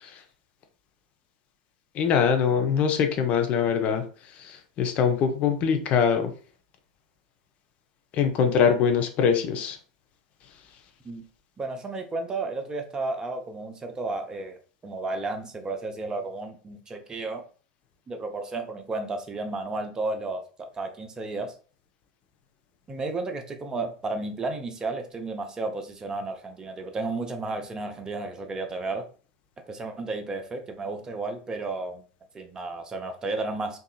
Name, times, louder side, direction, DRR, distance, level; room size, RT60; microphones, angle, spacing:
voice 1, 1.9-4.0 4.4-6.3 8.1-9.8, left 7 dB, 40° left, 6 dB, 0.5 m, -23 dB
voice 2, 11.6-17.4 18.1-21.6 22.9-29.1 29.7-32.0 32.3-33.8, right 3 dB, 20° right, 5 dB, 0.5 m, -33 dB
2.7 x 2.4 x 2.2 m, 0.39 s
figure-of-eight pair, 85°, 4 cm